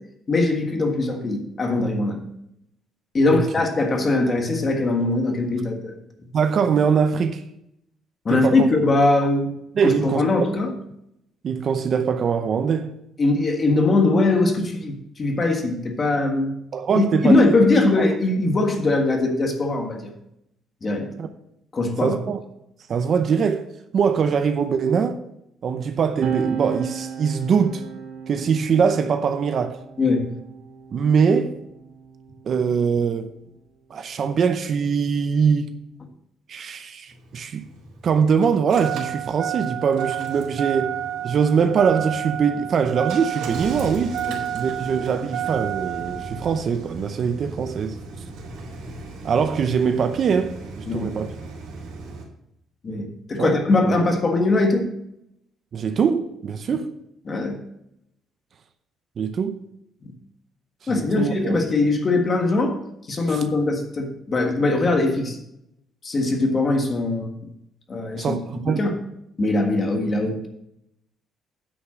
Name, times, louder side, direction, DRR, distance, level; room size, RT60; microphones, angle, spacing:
voice 1, 0.3-2.3 3.1-5.9 8.2-9.5 9.8-10.7 13.2-16.5 16.9-20.1 20.8-21.1 21.7-22.2 30.0-30.3 44.3-44.4 50.9-51.1 52.8-54.9 56.7-56.8 57.3-57.6 60.0-60.1 60.9-62.8 63.1-65.4 66.0-67.4 67.9-68.4 68.7-69.0 69.4-70.5, left 2 dB, 25° left, 1.5 m, -21 dB
voice 2, 6.3-7.4 8.3-8.7 9.8-10.2 11.4-12.9 16.7-17.6 18.0-18.1 21.2-21.3 22.0-22.4 22.9-23.7 23.9-25.2 25.6-27.8 28.3-29.8 30.9-31.6 32.5-33.3 33.9-35.7 36.5-37.6 38.0-40.9 41.2-44.2 44.5-48.0 49.2-51.3 53.4-53.5 55.7-56.9 59.2-59.6 60.8-61.6 63.3-63.4 68.2-68.4 68.6-68.8, right 6 dB, 40° right, 0.6 m, -22 dB
sound 1, 26.2-33.1 34.1-35.9, right 7 dB, 65° right, 1.1 m, -35 dB
Engine starting, 37.1-52.2, right 8 dB, 85° right, 3.3 m, -32 dB
9.7 x 5.8 x 6.1 m
cardioid pair, 165°, 0 cm